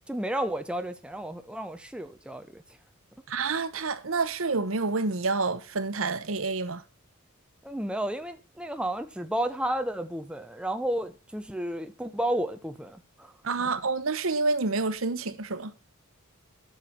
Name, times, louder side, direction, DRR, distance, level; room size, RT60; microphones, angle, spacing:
voice 1, 0.1-2.6 7.6-13.3 13.6-13.7, right 1 dB, 5° right, 0.7 m, -32 dB
voice 2, 3.3-6.8 13.4-15.7, right 3 dB, 75° right, 1.0 m, -28 dB
12.0 x 6.9 x 4.5 m
head